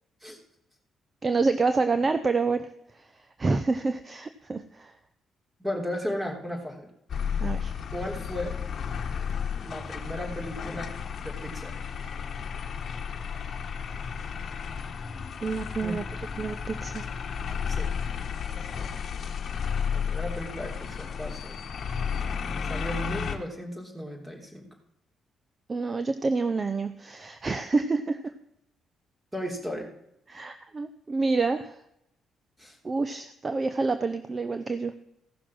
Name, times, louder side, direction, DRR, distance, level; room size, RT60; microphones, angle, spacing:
voice 1, 1.2-3.1 3.4-4.9 7.4-7.7 15.4-16.0 16.4-17.2 25.7-28.3 30.3-31.8 32.8-34.9, right 3 dB, 30° right, 10 dB, 0.7 m, -28 dB
voice 2, 5.6-6.9 7.9-8.6 9.6-10.9 11.2-11.8 15.8-16.0 17.7-17.9 19.9-21.6 22.6-24.7 29.3-29.9 32.6-32.8, equal, 10° right, 1 dB, 3.4 m, -35 dB
sound 1, 7.1-23.4, left 7 dB, 50° left, 1.2 m, -33 dB
15.5 x 6.1 x 6.1 m, 0.80 s
cardioid pair, 90°, 0 cm